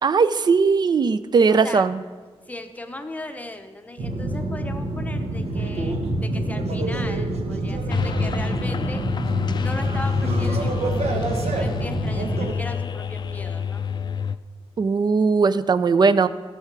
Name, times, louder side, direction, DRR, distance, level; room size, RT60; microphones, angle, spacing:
voice 1, 0.0-2.0 14.8-16.3, right 5 dB, 40° right, 14 dB, 0.4 m, -19 dB
voice 2, 1.5-1.9 2.5-9.0 9.6-13.8, left 2 dB, 15° left, 6 dB, 0.8 m, -37 dB
sound 1, 4.0-12.5, right 2 dB, 80° right, 1.4 m, -27 dB
sound 2, 7.9-14.4, left 6 dB, 45° left, 0.4 m, -27 dB
15.5 x 5.7 x 6.0 m, 1.4 s
wide cardioid pair, 150°, 11 cm